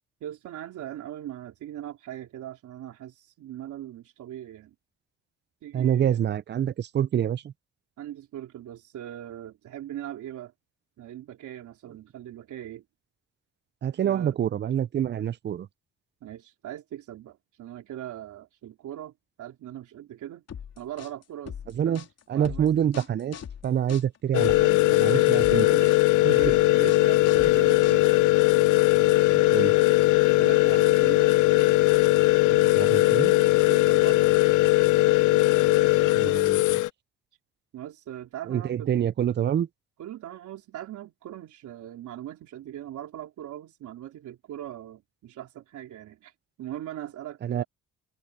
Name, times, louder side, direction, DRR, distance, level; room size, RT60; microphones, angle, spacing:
voice 1, 0.2-4.7 5.6-6.2 8.0-10.5 11.0-12.8 14.0-14.4 16.2-19.1 19.4-20.4 20.8-22.0 22.3-22.8 25.1-25.9 26.3-28.1 30.4-31.3 33.6-34.4 37.7-39.1 40.0-46.3 46.6-47.6, right 12 dB, 75° right, 3.7 m, -40 dB
voice 2, 5.7-7.5 13.8-15.7 21.7-22.0 22.3-23.4 23.6-25.7 26.2-26.5 29.3-29.7 32.5-33.3 36.2-36.8 38.5-39.7 47.4-47.6, right 9 dB, 35° right, 0.5 m, -27 dB
sound 1, 20.5-28.3, left 8 dB, 55° left, 3.5 m, -41 dB
sound 2, 24.3-36.9, left 19 dB, 80° left, 0.6 m, -20 dB
cardioid pair, 90°, 30 cm